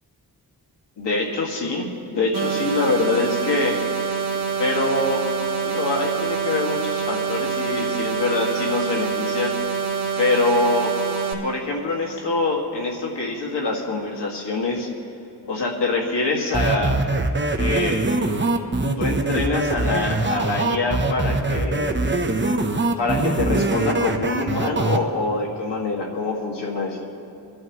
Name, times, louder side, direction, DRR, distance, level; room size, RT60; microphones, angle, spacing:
voice 1, 1.0-3.8 4.6-5.2 5.6-9.5 10.2-10.9 11.4-14.9 15.4-17.0 17.6-18.1 19.0-22.0 23.0-27.1, left 3 dB, 85° left, -1 dB, 2.2 m, -24 dB
sound 1, 2.3-11.3, right 5 dB, 50° right, 2.1 m, -26 dB
sound 2, 16.5-25.0, right 2 dB, 25° right, 1.0 m, -22 dB
26.5 x 11.0 x 3.1 m, 2.8 s
wide cardioid pair, 65°, 41 cm